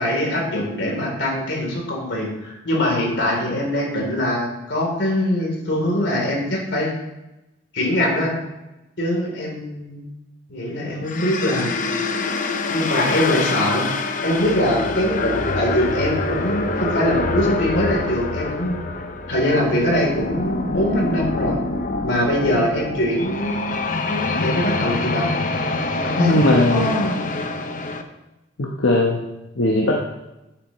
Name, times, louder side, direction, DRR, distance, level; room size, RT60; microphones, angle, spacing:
voice 1, 0.0-7.0 7.7-8.4 9.0-10.1 10.5-11.8 12.7-13.9 14.2-18.8 19.3-21.6 22.0-25.3 26.0-27.2, left 1 dB, 70° left, -1 dB, 3.5 m, -22 dB
sound 1, 11.0-28.0, left 3 dB, 45° left, 0.8 m, -25 dB
voice 2, 26.2-26.9 28.6-29.2 29.6-30.0, left 2 dB, 90° left, -1 dB, 1.1 m, -18 dB
11.5 x 9.0 x 3.2 m, 0.98 s
head